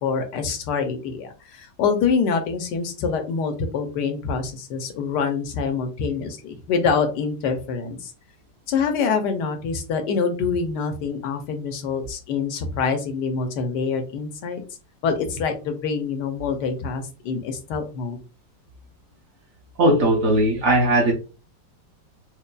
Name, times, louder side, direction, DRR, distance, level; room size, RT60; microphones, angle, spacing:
voice 1, 0.0-8.1 8.7-14.6 15.0-18.2, left 5 dB, 75° left, 6 dB, 1.1 m, -25 dB
voice 2, 19.8-21.1, right 1 dB, 60° right, 0 dB, 1.0 m, -18 dB
4.6 x 2.5 x 2.2 m, 0.33 s
omnidirectional pair, 2.0 m